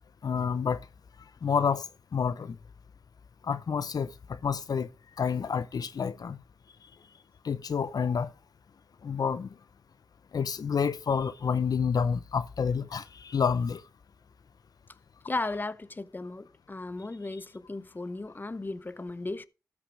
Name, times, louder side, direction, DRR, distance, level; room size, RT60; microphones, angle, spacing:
voice 1, 0.2-0.8 1.4-1.9 2.1-2.6 3.4-4.1 4.4-4.9 5.2-6.4 7.4-8.3 9.0-9.5 10.3-13.8, left 6 dB, 70° left, 0.6 m, -28 dB
voice 2, 15.2-19.5, left 2 dB, 30° left, 0.7 m, -36 dB
13.0 x 6.2 x 4.7 m
cardioid pair, 55°, 7 cm